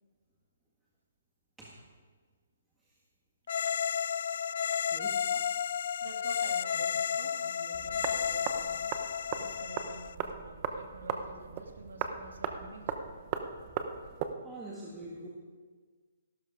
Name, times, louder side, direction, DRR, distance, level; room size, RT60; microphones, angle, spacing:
sound 1, 3.5-10.1, left 8 dB, 55° left, 0.3 m, -32 dB
voice 1, 4.8-5.2 14.4-15.3, right 2 dB, 10° right, -6 dB, 1.7 m, -45 dB
voice 2, 6.0-8.7 9.3-13.1, right 3 dB, 85° right, 3 dB, 2.4 m, -48 dB
sound 2, 7.7-14.3, right 7 dB, 30° right, 0.9 m, -38 dB
14.5 x 12.5 x 5.0 m, 1.5 s
hypercardioid pair, 160°, 0 cm